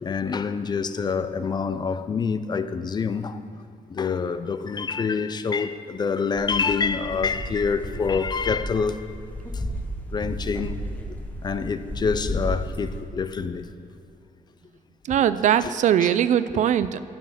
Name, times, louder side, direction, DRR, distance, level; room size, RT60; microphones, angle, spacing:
voice 1, 0.0-3.4 3.9-9.0 10.1-10.8 11.4-13.7 16.0-16.1, left 5 dB, 30° left, 0.5 m, -26 dB
sound 1, 6.4-13.0, equal, 10° left, 1.0 m, -33 dB
voice 2, 15.0-17.0, right 10 dB, 60° right, 0.4 m, -21 dB
10.5 x 8.6 x 7.5 m
cardioid pair, 160°, 15 cm